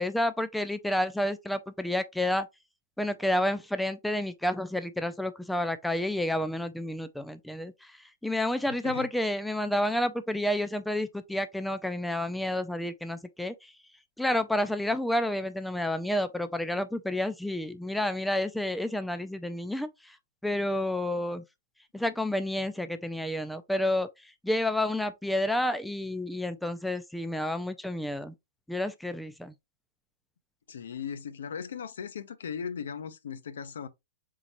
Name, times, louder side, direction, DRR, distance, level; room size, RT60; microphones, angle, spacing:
voice 1, 0.0-2.5 3.0-7.9 8.2-13.7 14.2-20.2 20.4-21.4 21.9-24.1 24.4-28.3 28.7-29.5, left 1 dB, ahead, 0.3 m, -30 dB
voice 2, 8.7-9.1 30.7-33.9, left 7 dB, 85° left, 0.7 m, -38 dB
4.2 x 3.8 x 2.9 m
hypercardioid pair, 160°, 0 cm